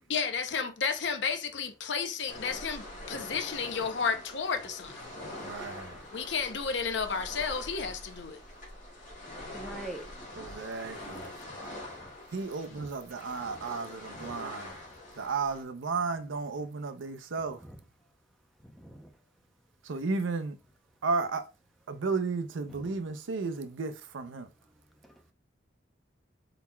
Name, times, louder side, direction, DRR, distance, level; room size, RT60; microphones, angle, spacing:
voice 1, 0.1-4.9 6.1-8.4, left 5 dB, 65° left, 0.6 m, -32 dB
sound 1, 2.3-15.6, left 1 dB, 40° left, 1.9 m, -44 dB
voice 2, 5.4-6.0 10.4-11.3 12.3-14.7 15.2-17.6 19.8-20.6 21.0-21.4 21.9-24.5, right 4 dB, 80° right, 0.5 m, -33 dB
voice 3, 9.5-10.1 12.0-12.1 12.7-12.9 14.1-14.3 17.6-17.7 18.8-19.1 22.7-22.9, right 1 dB, ahead, 0.6 m, -43 dB
4.1 x 3.9 x 2.2 m
head